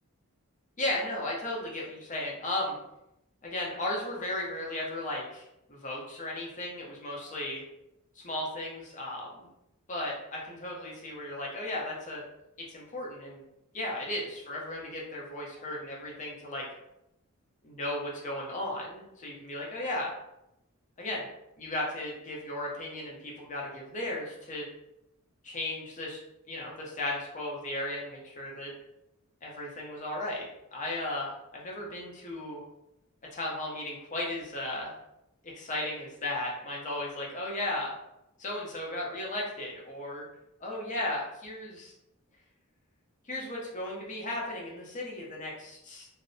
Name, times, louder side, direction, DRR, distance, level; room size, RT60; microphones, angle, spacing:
voice 1, 0.8-2.8 3.4-7.6 8.2-9.3 9.9-12.2 12.7-13.4 13.7-16.6 17.6-20.1 21.0-21.3 21.6-24.6 25.4-26.2 26.5-28.7 29.4-30.5 30.7-32.6 33.3-34.9 35.5-37.9 38.4-40.2 40.6-41.9 43.3-46.1, left 1 dB, 35° left, -2 dB, 0.6 m, -35 dB
2.6 x 2.0 x 2.6 m, 0.85 s
head